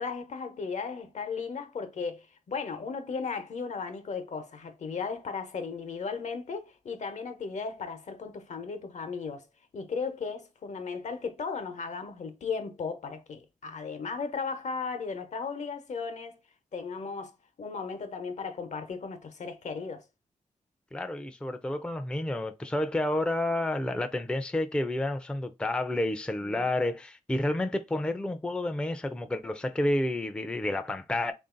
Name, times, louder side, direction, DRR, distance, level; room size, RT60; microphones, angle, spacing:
voice 1, 0.0-9.5 9.7-16.4 16.7-17.3 17.6-20.0 26.4-26.7, left 5 dB, 65° left, 0.8 m, -36 dB
voice 2, 20.9-31.3, left 1 dB, 10° left, 0.4 m, -30 dB
3.6 x 2.6 x 3.7 m
wide cardioid pair, 95°, 13 cm